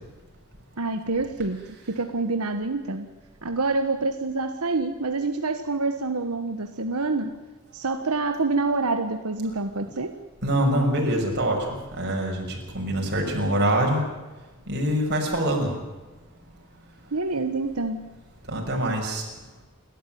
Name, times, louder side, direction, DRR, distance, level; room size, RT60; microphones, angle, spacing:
voice 1, 0.8-1.6 1.9-3.1 3.4-7.4 7.7-10.1 17.1-18.1, right 3 dB, 85° right, 7 dB, 1.4 m, -27 dB
voice 2, 10.4-11.7 11.9-14.0 14.7-15.7 18.5-19.2, right 1 dB, 50° right, 0 dB, 6.3 m, -24 dB
29.5 x 13.0 x 9.2 m, 1.2 s
head